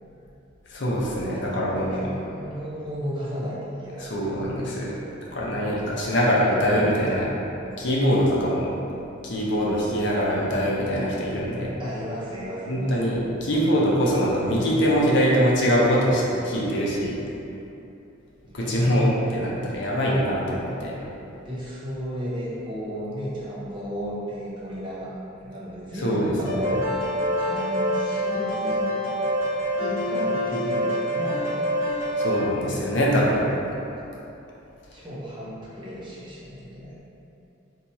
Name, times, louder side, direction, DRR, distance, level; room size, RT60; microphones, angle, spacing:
voice 1, 0.7-2.1 4.0-4.9 5.3-7.3 7.7-8.7 9.2-11.7 12.7-17.2 18.5-20.9 26.0-26.8 32.2-33.5, equal, 60° left, -5 dB, 0.6 m, -23 dB
voice 2, 1.9-4.4 11.8-13.1 18.5-18.9 21.4-28.8 29.8-31.5 34.9-37.0, equal, 25° right, -8 dB, 0.6 m, -34 dB
sound 1, 26.4-32.4, equal, 30° left, 1.1 m, -26 dB
2.7 x 2.3 x 4.0 m, 2.9 s
head